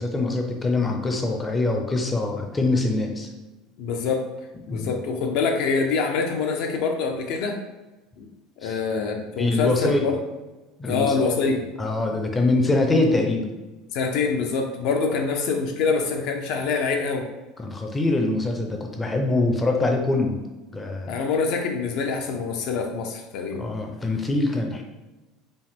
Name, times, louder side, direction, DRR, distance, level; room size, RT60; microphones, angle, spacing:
voice 1, 0.0-3.3 4.7-4.9 8.6-8.8 9.4-10.0 10.8-11.1 11.8-13.5 17.6-20.4 20.7-21.2 23.6-24.8, left 2 dB, 10° left, 3 dB, 0.5 m, -24 dB
voice 2, 3.8-4.2 4.7-7.6 8.2-8.3 8.6-10.2 10.8-11.7 13.9-17.3 21.1-23.7, left 4 dB, 55° left, 4 dB, 0.6 m, -25 dB
5.2 x 2.2 x 3.5 m, 1.1 s
cardioid pair, 160°, 0 cm